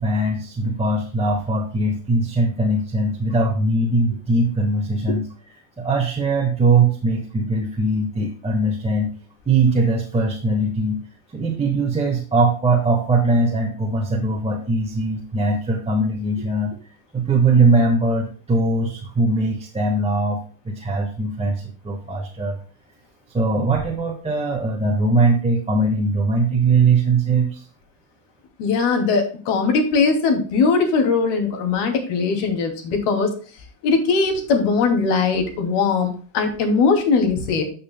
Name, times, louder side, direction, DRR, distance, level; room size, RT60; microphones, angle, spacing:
voice 1, 0.0-5.3 5.8-9.1 9.4-11.0 11.3-16.7 17.1-22.6 23.3-27.6, right 2 dB, 15° right, -2 dB, 1.5 m, -20 dB
voice 2, 28.6-33.4 33.8-37.6, left 4 dB, 65° left, 4 dB, 2.7 m, -20 dB
13.0 x 5.7 x 2.2 m, 0.39 s
supercardioid pair, 110°, 45 cm